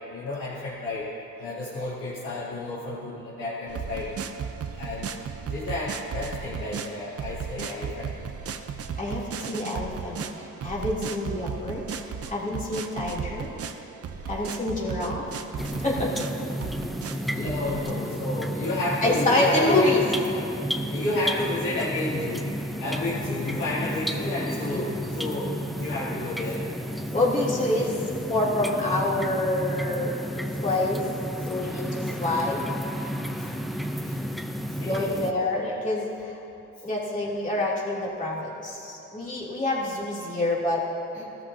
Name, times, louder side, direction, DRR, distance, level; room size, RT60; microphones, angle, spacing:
voice 1, 0.1-1.1 1.4-4.1 4.8-5.1 5.5-8.1 17.2-19.9 20.9-22.5 22.8-24.9 25.1-26.6 33.4-33.8 34.0-34.2 34.8-35.1, left 2 dB, 70° left, -11 dB, 3.0 m, -31 dB
sound 1, 3.7-17.9, right 6 dB, 50° right, 0.8 m, -35 dB
voice 2, 9.0-11.8 12.2-13.5 14.2-15.3 15.8-16.1 18.6-18.7 19.0-20.1 24.7-24.8 27.1-30.2 30.6-31.1 31.4-32.6 32.9-33.0 34.8-36.4 36.8-40.9 41.1-41.3, left 2 dB, 25° left, -6 dB, 3.1 m, -27 dB
sound 2, 15.6-35.3, equal, ahead, 0.7 m, -32 dB
17.5 x 13.5 x 2.8 m, 2.9 s
cardioid pair, 90°, 30 cm